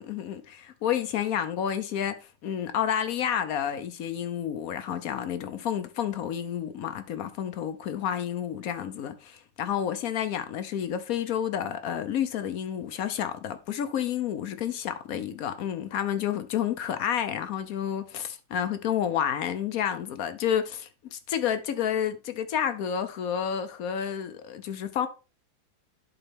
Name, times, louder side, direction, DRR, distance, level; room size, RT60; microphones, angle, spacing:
voice 1, 0.0-25.1, left 9 dB, 65° left, 0.9 m, -30 dB
11.0 x 3.9 x 3.5 m
omnidirectional pair, 2.0 m